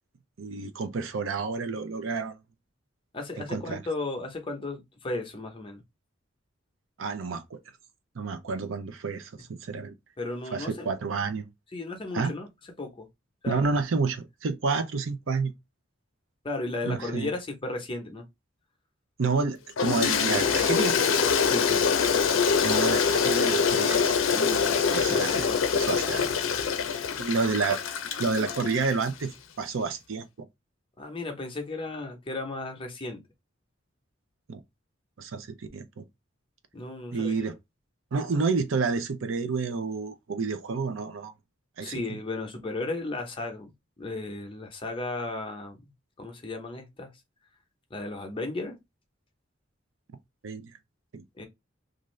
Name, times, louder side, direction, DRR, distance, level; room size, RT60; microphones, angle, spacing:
voice 1, 0.4-2.3 3.5-3.8 7.0-7.6 8.1-9.9 10.5-11.5 12.1-12.3 13.5-15.5 16.8-17.3 19.2-20.9 22.6-25.5 25.7-26.3 27.2-27.8 28.2-29.3 29.6-30.5 34.5-34.6 35.2-36.0 37.1-37.6 38.1-41.3 41.8-42.2 50.4-50.7 51.1-51.2, right 4 dB, 85° right, 0.5 m, -29 dB
voice 2, 3.1-5.8 10.2-10.9 11.7-12.5 12.8-13.1 13.4-13.7 16.4-18.2 21.5-21.9 25.0-25.9 31.0-33.2 36.7-37.5 41.8-43.7 44.0-45.9 46.2-47.1 47.9-48.8 51.4-51.5, left 2 dB, 25° left, 0.7 m, -35 dB
Toilet flush, 19.8-29.1, left 6 dB, 85° left, 0.5 m, -25 dB
2.5 x 2.5 x 3.0 m
head